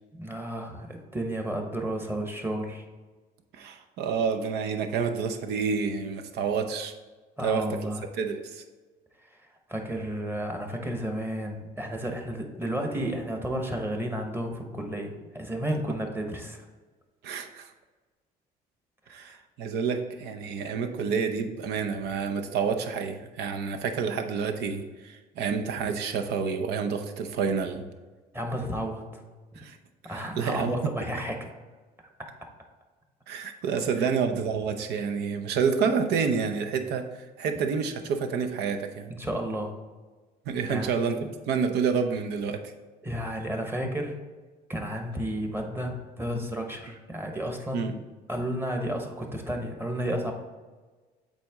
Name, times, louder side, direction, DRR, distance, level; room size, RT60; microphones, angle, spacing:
voice 1, 0.2-2.9 7.4-8.0 9.2-9.3 9.7-16.7 19.1-19.4 28.3-29.2 30.0-31.5 32.2-32.3 34.0-34.1 39.1-39.7 40.7-40.9 43.0-44.1 44.7-48.0 48.3-50.3, right 1 dB, 15° right, 3 dB, 1.1 m, -32 dB
voice 2, 3.5-6.9 7.4-7.6 8.2-8.6 17.2-17.7 19.1-27.8 29.6-29.8 30.0-30.7 33.3-37.1 37.4-39.1 40.5-42.7 47.7-47.9, right 6 dB, 80° right, 6 dB, 0.8 m, -29 dB
7.6 x 4.3 x 3.6 m, 1.3 s
cardioid pair, 110°, 17 cm